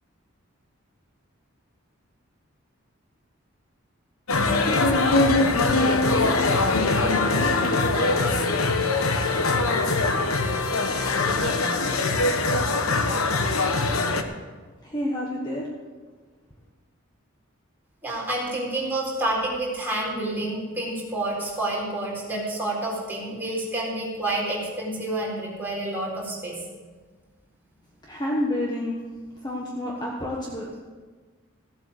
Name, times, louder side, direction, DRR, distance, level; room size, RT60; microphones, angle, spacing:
sound 1, 4.3-14.2, left 3 dB, 90° left, 1.1 m, -22 dB
voice 1, 14.8-15.7 28.0-29.0 29.4-30.8, left 1 dB, 20° left, -3 dB, 1.3 m, -29 dB
voice 2, 18.0-26.6, right 1 dB, 10° right, -5 dB, 4.1 m, -29 dB
16.0 x 8.1 x 6.7 m, 1.4 s
head